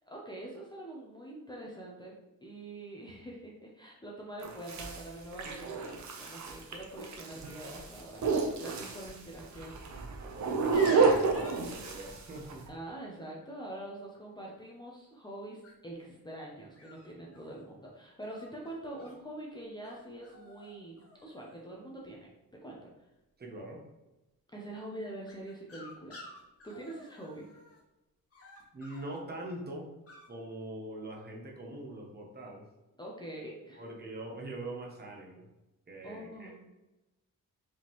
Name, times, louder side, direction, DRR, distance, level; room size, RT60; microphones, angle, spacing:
voice 1, 0.1-2.2 2.4-9.7 12.7-22.3 22.6-22.9 24.5-26.2 26.6-27.4 33.0-33.8 36.0-36.6, right 1 dB, 15° left, -3 dB, 0.6 m, -45 dB
sound 1, 4.4-12.7, right 4 dB, 55° right, 0.7 m, -30 dB
voice 2, 10.2-12.7 23.4-23.8 28.7-29.9 30.3-32.7 33.7-35.4 35.9-36.7, right 1 dB, 30° right, -1 dB, 0.9 m, -43 dB
sound 2, 10.7-12.5 15.6-16.0 16.8-17.6 18.2-19.1 19.8-20.0 20.2-20.7 21.0-21.6 25.3-27.8 28.3-29.2 30.1-30.3, left 2 dB, 40° left, 1.3 m, -49 dB
4.8 x 3.7 x 3.0 m, 1.0 s
wide cardioid pair, 160°, 35 cm